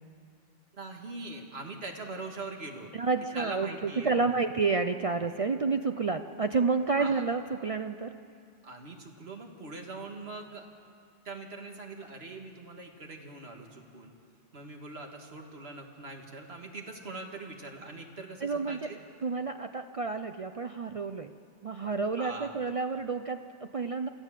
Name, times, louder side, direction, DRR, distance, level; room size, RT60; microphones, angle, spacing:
voice 1, 0.7-2.9 3.3-4.4 6.9-7.2 8.6-10.7 11.3-14.1 14.5-19.0 22.2-22.5, right 3 dB, 85° right, 2 dB, 2.1 m, -42 dB
voice 2, 2.9-8.1 18.4-18.9 19.2-21.3 21.6-24.1, right 4 dB, 45° right, 7 dB, 0.5 m, -30 dB
25.0 x 14.0 x 7.5 m, 2.3 s
omnidirectional pair, 1.0 m